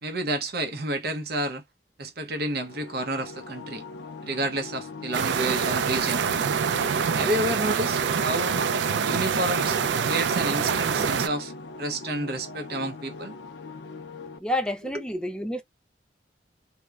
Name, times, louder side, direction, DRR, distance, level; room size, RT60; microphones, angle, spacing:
voice 1, 0.0-1.6 2.0-3.8 4.2-6.3 7.2-8.7 9.0-9.8 10.0-11.5 11.8-13.3, right 1 dB, 60° right, 0.7 m, -30 dB
sound 1, 2.5-14.4, left 3 dB, 85° left, 0.4 m, -41 dB
sound 2, 5.1-11.3, right 6 dB, 80° right, 0.3 m, -25 dB
voice 2, 14.4-15.6, left 1 dB, 5° left, 0.4 m, -29 dB
2.9 x 2.1 x 2.3 m
head